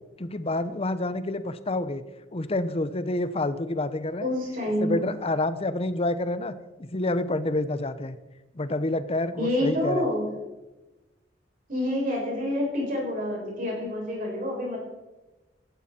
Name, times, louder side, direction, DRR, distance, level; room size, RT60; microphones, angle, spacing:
voice 1, 0.2-2.0 2.3-4.3 4.8-8.2 8.5-10.0, left 2 dB, 30° left, 13 dB, 0.8 m, -28 dB
voice 2, 4.2-5.0 9.4-10.3 11.7-14.8, left 1 dB, 50° right, -2 dB, 6.5 m, -27 dB
16.0 x 13.0 x 4.4 m, 1.1 s
head